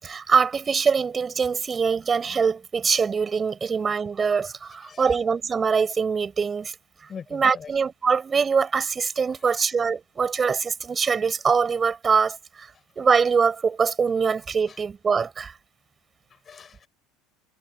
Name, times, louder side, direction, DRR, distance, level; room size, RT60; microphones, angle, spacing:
voice 1, 0.0-6.7 7.3-15.5, right 5 dB, 20° right, 6.1 m, -23 dB
voice 2, 4.8-5.1 7.1-7.7 9.3-9.6 14.7-14.8 16.3-16.9, left 6 dB, 25° left, 7.0 m, -43 dB
cardioid pair, 140°, 0 cm